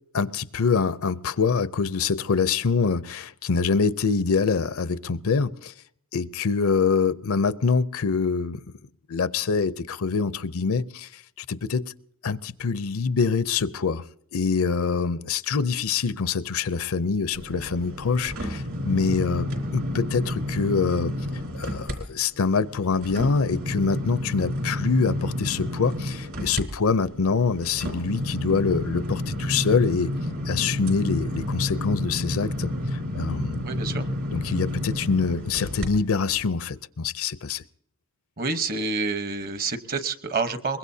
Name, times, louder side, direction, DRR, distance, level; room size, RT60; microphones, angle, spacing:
voice 1, 0.1-5.7 6.1-8.6 9.1-11.9 12.2-14.0 14.3-21.1 21.5-30.1 30.5-33.7 34.3-37.6, left 5 dB, 70° left, 0.6 m, -25 dB
sound 1, 17.3-22.0 22.4-35.9 36.4-36.5, left 1 dB, 65° right, 4.0 m, -30 dB
voice 2, 33.6-34.1 38.4-40.8, right 4 dB, 45° right, 1.0 m, -28 dB
23.0 x 21.0 x 2.8 m
head